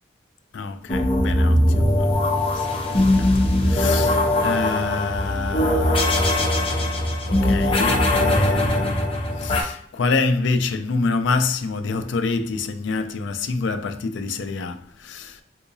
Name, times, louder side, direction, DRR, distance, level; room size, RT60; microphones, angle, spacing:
voice 1, 0.5-15.4, left 4 dB, 75° left, 0.4 m, -27 dB
sound 1, 0.9-9.6, left 1 dB, 30° left, 0.6 m, -20 dB
3.8 x 2.7 x 2.6 m
head